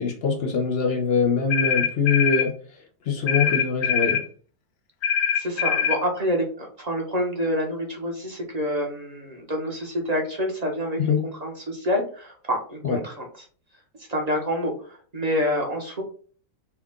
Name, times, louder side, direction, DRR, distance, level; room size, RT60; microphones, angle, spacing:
voice 1, 0.0-2.5 3.1-4.2 11.0-11.3 12.8-13.0, left 5 dB, 90° left, 2 dB, 0.5 m, -23 dB
sound 1, 1.5-2.5 3.3-4.3 5.0-6.0, left 8 dB, 70° left, 0.9 m, -23 dB
voice 2, 5.4-13.3 14.1-16.0, equal, 30° right, 1 dB, 0.9 m, -27 dB
5.8 x 2.3 x 3.6 m, 0.43 s
omnidirectional pair, 1.9 m